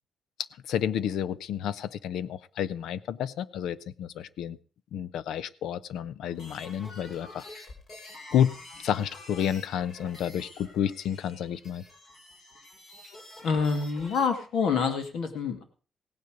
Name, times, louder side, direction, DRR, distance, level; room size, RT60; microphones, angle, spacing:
voice 1, 0.7-4.6 4.9-7.5 8.3-8.5 8.8-11.8, left 9 dB, 90° left, 18 dB, 0.7 m, -30 dB
sound 1, 6.3-14.3, left 2 dB, 45° left, 3.9 m, -48 dB
voice 2, 13.4-15.6, left 5 dB, 65° left, 7 dB, 2.3 m, -27 dB
17.0 x 9.6 x 5.1 m, 0.38 s
cardioid pair, 175°, 0 cm